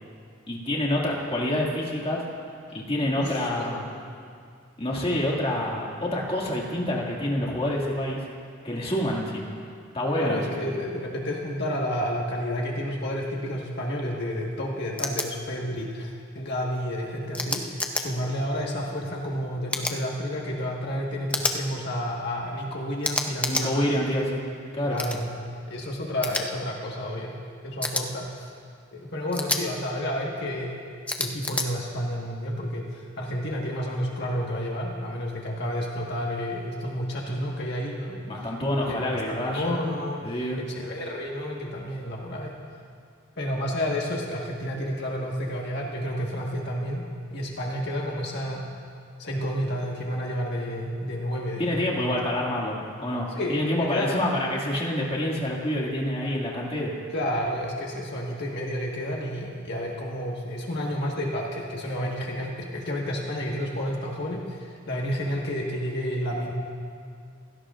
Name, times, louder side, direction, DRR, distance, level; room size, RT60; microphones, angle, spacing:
voice 1, 0.5-2.2 2.7-3.9 4.8-8.2 8.6-9.5 9.9-10.4 23.5-24.4 24.7-25.0 38.3-39.8 40.2-40.6 51.6-56.9, left 1 dB, 25° left, -3 dB, 2.1 m, -27 dB
voice 2, 3.2-3.7 10.2-24.2 24.9-25.3 25.7-27.4 27.6-28.5 28.9-30.8 31.2-38.3 38.9-42.5 43.4-47.0 47.3-48.7 49.2-52.3 53.3-54.2 57.1-66.5, equal, 55° left, -2 dB, 1.5 m, -30 dB
sound 1, 15.0-15.3 17.3-18.0 19.7-20.0 21.3-21.6 23.0-23.7 25.0-25.2 26.2-26.4 27.8-28.0 29.3-29.6 31.1-31.7, left 2 dB, 5° left, 0.8 m, -28 dB
27.5 x 17.0 x 2.5 m, 2.3 s
head